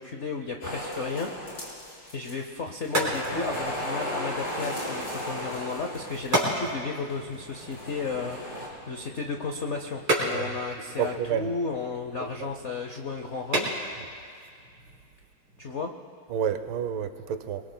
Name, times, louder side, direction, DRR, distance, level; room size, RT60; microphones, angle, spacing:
voice 1, 0.0-1.3 2.1-8.4 8.9-13.7 15.6-15.9, left 4 dB, 75° left, 4 dB, 0.6 m, -33 dB
sound 1, 0.6-2.6 2.8-6.7 7.4-8.7, equal, 50° left, 4.6 m, -35 dB
sound 2, 2.4-15.8, right 1 dB, 60° right, 4.3 m, -34 dB
voice 2, 11.0-11.5 12.4-12.5 16.3-17.6, right 8 dB, 75° right, 9 dB, 1.5 m, -29 dB
26.0 x 22.0 x 2.2 m, 2.3 s
omnidirectional pair, 2.3 m